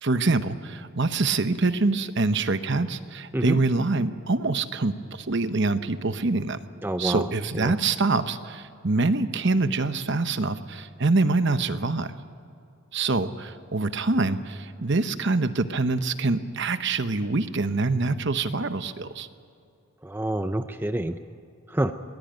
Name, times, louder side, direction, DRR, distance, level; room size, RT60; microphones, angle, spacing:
voice 1, 0.0-6.6 7.0-12.1 12.9-19.3, right 3 dB, 50° right, 11 dB, 0.9 m, -25 dB
voice 2, 6.8-7.2 7.6-7.7 20.0-21.2 21.7-21.9, right 1 dB, 10° right, 9 dB, 0.5 m, -27 dB
21.5 x 20.0 x 9.0 m, 2.5 s
head